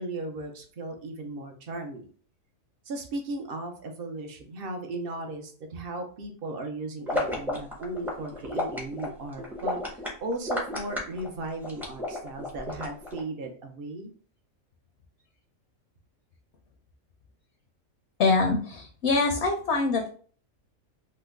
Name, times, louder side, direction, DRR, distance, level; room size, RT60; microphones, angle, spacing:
voice 1, 0.0-2.1 2.9-14.1, right 2 dB, 60° right, 4 dB, 0.6 m, -36 dB
sound 1, 7.1-13.2, left 1 dB, 5° right, 0.4 m, -32 dB
voice 2, 18.2-20.1, left 3 dB, 65° left, 3 dB, 0.8 m, -24 dB
3.0 x 2.1 x 3.4 m, 0.44 s
omnidirectional pair, 1.4 m